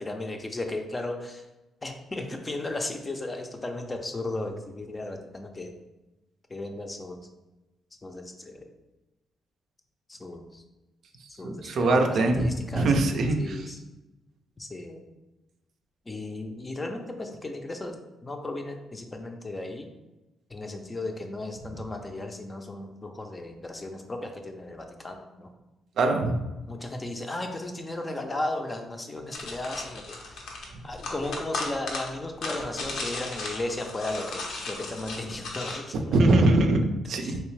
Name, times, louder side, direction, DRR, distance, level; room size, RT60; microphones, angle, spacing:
voice 1, 0.0-1.4 1.8-5.7 6.5-7.2 8.0-8.6 10.1-10.6 11.4-12.9 13.4-13.8 14.6-15.0 16.1-18.0 18.2-19.9 20.5-25.5 26.7-30.4 30.8-36.1 36.5-36.6 37.2-37.4, left 2 dB, 25° left, 4 dB, 0.5 m, -35 dB
voice 2, 11.4-13.7 26.0-26.4 35.9-37.4, right 2 dB, 65° right, 4 dB, 0.4 m, -23 dB
sound 1, 29.3-35.8, left 3 dB, 80° left, 0.7 m, -36 dB
3.4 x 2.8 x 3.1 m, 1.0 s
cardioid pair, 90°, 0 cm